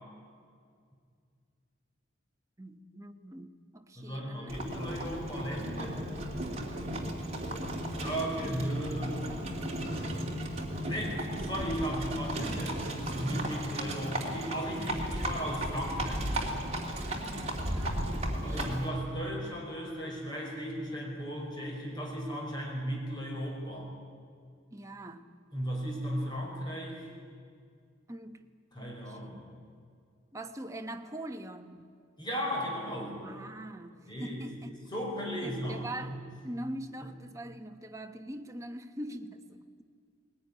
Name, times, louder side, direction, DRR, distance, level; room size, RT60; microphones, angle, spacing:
voice 1, 2.6-4.6 17.6-18.1 18.5-18.8 24.7-25.3 28.1-28.5 28.8-29.4 30.3-31.9 33.2-34.8 35.4-36.2 36.4-39.8, right 1 dB, 15° right, 6 dB, 1.0 m, -43 dB
voice 2, 4.0-6.0 8.0-9.2 9.4-9.6 10.9-16.4 18.4-23.9 25.5-27.1 28.7-29.4 32.2-33.2 34.1-34.4 34.9-36.2, equal, 20° left, -2 dB, 5.4 m, -36 dB
Livestock farm animals working animals, 4.5-18.9, right 1 dB, 30° right, 3.0 m, -35 dB
20.0 x 18.0 x 10.0 m, 2.2 s
head